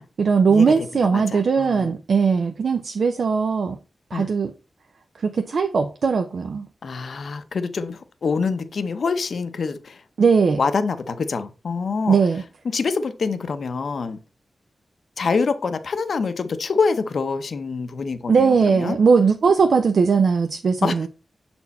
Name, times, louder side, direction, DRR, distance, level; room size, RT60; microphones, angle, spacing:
voice 1, 0.2-3.8 4.1-4.5 5.2-6.7 10.2-10.6 12.1-12.4 18.3-21.1, right 5 dB, 70° right, 0.5 m, -19 dB
voice 2, 1.0-1.9 4.1-4.3 6.8-10.0 10.6-12.2 12.6-14.2 15.2-19.0 20.8-20.9, left 4 dB, 70° left, 0.7 m, -25 dB
6.9 x 4.4 x 4.1 m
wide cardioid pair, 120°, 0 cm